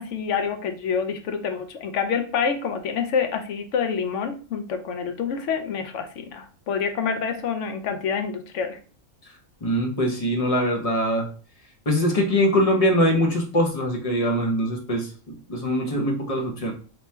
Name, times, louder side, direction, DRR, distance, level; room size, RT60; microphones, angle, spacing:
voice 1, 0.0-8.8, left 6 dB, 70° left, 7 dB, 0.9 m, -27 dB
voice 2, 9.6-11.3 11.9-15.1 15.5-16.7, equal, 35° left, 0 dB, 0.7 m, -22 dB
3.0 x 2.2 x 4.2 m, 0.39 s
omnidirectional pair, 1.4 m